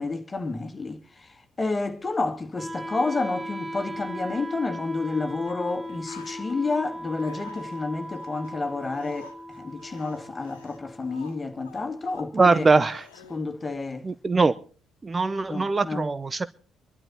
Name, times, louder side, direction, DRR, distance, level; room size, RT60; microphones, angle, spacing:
voice 1, 0.0-12.7 13.3-14.1 15.5-16.0, left 3 dB, 25° left, 2.1 m, -30 dB
Wind instrument woodwind instrument, 2.5-12.5, left 1 dB, 5° right, 2.3 m, -38 dB
sound 1, 5.5-5.6 5.8-6.8 7.2-13.4, left 6 dB, 80° left, 1.5 m, -49 dB
voice 2, 12.3-13.1 14.0-14.6 15.0-16.5, right 3 dB, 30° right, 0.7 m, -22 dB
24.0 x 12.0 x 4.1 m
figure-of-eight pair, 45°, 0 cm